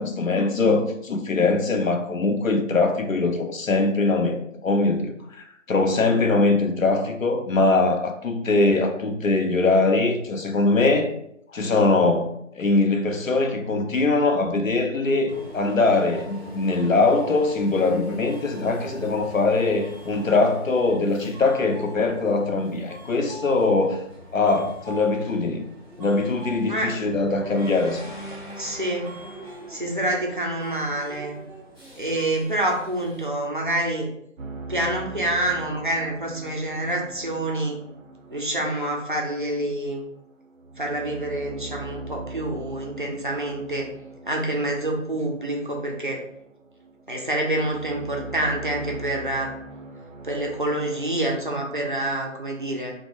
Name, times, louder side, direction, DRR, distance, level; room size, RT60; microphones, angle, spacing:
voice 1, 0.0-11.1 11.5-24.0 24.3-25.7 26.0-28.1, left 3 dB, 85° left, 5 dB, 0.6 m, -22 dB
Subway metro underground, 15.3-33.3, equal, ahead, 0.6 m, -43 dB
voice 2, 26.7-27.0 28.6-29.1 29.7-31.4 32.0-34.1 34.7-37.8 38.3-40.0 40.8-43.9 44.3-46.2 47.1-49.5 50.2-52.9, right 1 dB, 40° right, -1 dB, 0.4 m, -27 dB
sound 1, 27.1-31.3, equal, 40° left, 0.4 m, -40 dB
sound 2, 34.4-52.2, right 3 dB, 85° right, 0.6 m, -41 dB
2.6 x 2.1 x 3.0 m, 0.74 s
figure-of-eight pair, 160°, 39 cm